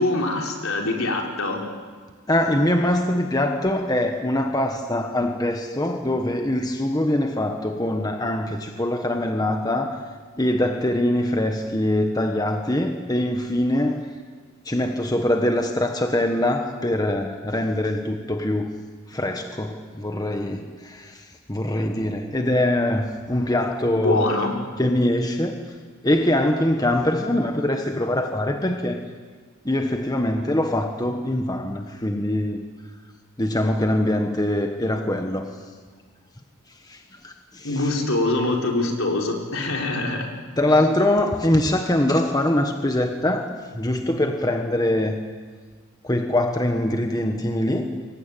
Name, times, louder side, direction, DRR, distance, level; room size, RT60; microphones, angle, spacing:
voice 1, 0.0-1.6 23.9-24.5 37.6-40.3 40.7-40.8, left 2 dB, 70° left, 1 dB, 5.0 m, -24 dB
voice 2, 2.3-9.9 10.4-14.0 14.7-18.7 19.1-21.1 21.5-24.3 24.8-25.6 26.0-29.0 29.6-32.6 33.4-35.5 36.9-37.0 37.2-37.8 40.6-45.2 46.0-47.9, left 1 dB, 20° left, 4 dB, 1.4 m, -23 dB
27.0 x 23.0 x 9.2 m, 1.5 s
head